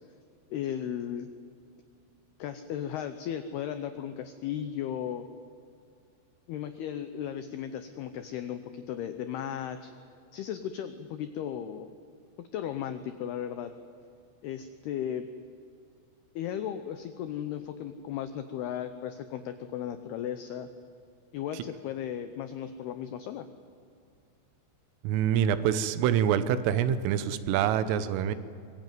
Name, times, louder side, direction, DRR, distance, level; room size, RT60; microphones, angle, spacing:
voice 1, 0.5-1.3 2.4-5.3 6.5-9.9 10.3-11.9 12.4-13.7 14.4-15.3 16.4-20.7 21.3-23.5, left 9 dB, 85° left, 9 dB, 2.2 m, -35 dB
voice 2, 25.0-28.4, right 9 dB, 80° right, 13 dB, 3.5 m, -26 dB
24.0 x 21.5 x 9.3 m, 2.4 s
omnidirectional pair, 5.9 m